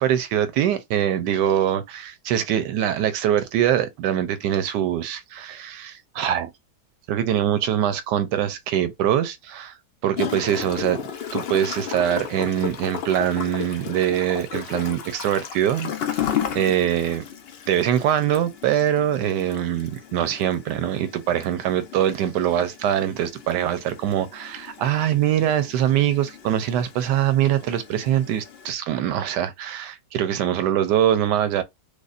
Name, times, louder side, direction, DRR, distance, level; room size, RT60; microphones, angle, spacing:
voice 1, 0.0-6.5 7.1-9.8 10.0-11.0 11.3-17.2 17.7-31.6, right 10 dB, 80° right, 1.2 m, -23 dB
Gurgling / Toilet flush, 10.2-28.7, left 9 dB, 90° left, 0.5 m, -34 dB
4.9 x 2.2 x 2.4 m
omnidirectional pair, 1.8 m